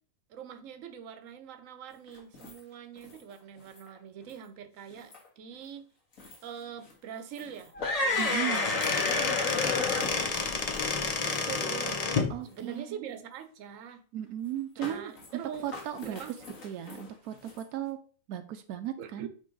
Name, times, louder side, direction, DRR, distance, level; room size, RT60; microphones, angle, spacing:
voice 1, 0.3-5.8 6.4-7.7 8.0-10.3 11.2-12.0 12.5-14.0 14.8-15.7 16.0-16.3 19.0-19.3, right 8 dB, 65° right, 9 dB, 1.1 m, -44 dB
sound 1, 2.1-2.5 3.0-3.2 3.8-3.9 4.3-4.4 4.9-5.3 6.2-6.3 6.9-7.0 7.3-11.6 11.8-11.9 12.7-12.8 14.8-15.3 15.5-17.6, left 3 dB, 65° left, 1.8 m, -33 dB
Squeak / Wood, 7.8-12.3, left 4 dB, 40° left, 0.6 m, -30 dB
voice 2, 8.2-8.7 12.3-13.1 14.1-16.4 16.6-18.0 18.3-19.3, right 11 dB, 85° right, 8 dB, 1.1 m, -36 dB
9.0 x 3.1 x 3.8 m, 0.41 s
omnidirectional pair, 1.6 m